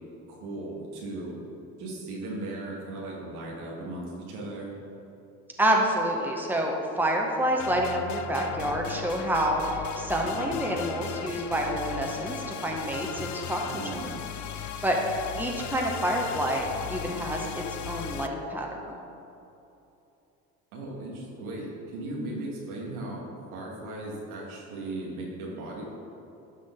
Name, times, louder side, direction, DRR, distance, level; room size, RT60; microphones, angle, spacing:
voice 1, 0.3-1.4 1.8-4.7 13.7-14.1 20.7-25.8, right 2 dB, 85° right, -4 dB, 2.1 m, -37 dB
voice 2, 5.6-13.8 14.8-19.0, right 1 dB, 5° right, -1 dB, 1.6 m, -28 dB
sound 1, 7.6-18.3, left 8 dB, 45° left, 0.6 m, -37 dB
12.0 x 6.0 x 3.9 m, 2.9 s
hypercardioid pair, 65°, 42 cm